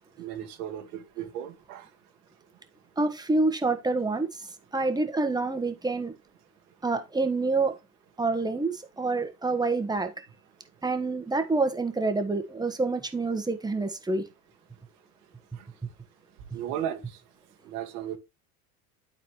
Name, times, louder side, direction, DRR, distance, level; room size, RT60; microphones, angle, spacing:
voice 1, 0.2-1.9 16.5-17.0 17.7-18.2, right 10 dB, 70° right, 1.7 m, -35 dB
voice 2, 3.0-4.3 4.7-6.1 6.8-7.7 8.2-10.1 10.8-14.2, right 3 dB, 10° right, 1.3 m, -27 dB
12.0 x 4.2 x 3.1 m
hypercardioid pair, 95°, 46 cm